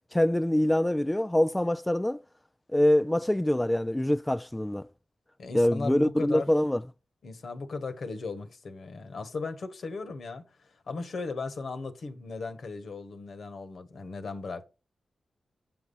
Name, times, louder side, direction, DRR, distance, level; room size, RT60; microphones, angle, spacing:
voice 1, 0.1-2.2 2.7-4.9 5.5-6.8, left 1 dB, 15° left, 0.3 m, -24 dB
voice 2, 5.4-6.5 7.2-14.7, left 4 dB, 70° left, 1.5 m, -37 dB
7.7 x 5.9 x 5.5 m
cardioid pair, 50°, 0 cm